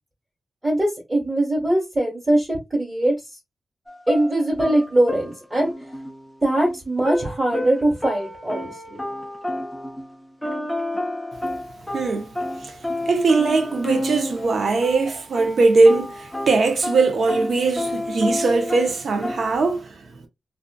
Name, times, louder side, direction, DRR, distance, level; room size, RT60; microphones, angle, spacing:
voice 1, 0.6-3.1 4.1-5.7 6.4-9.0, right 1 dB, 20° right, 1.4 m, -21 dB
sound 1, 3.9-10.1 10.4-14.6 14.8-19.5, left 1 dB, 5° left, 0.6 m, -30 dB
voice 2, 11.9-12.4 12.6-12.8 13.1-20.0, right 3 dB, 75° right, 0.6 m, -20 dB
2.5 x 2.4 x 2.2 m
wide cardioid pair, 105°, 0 cm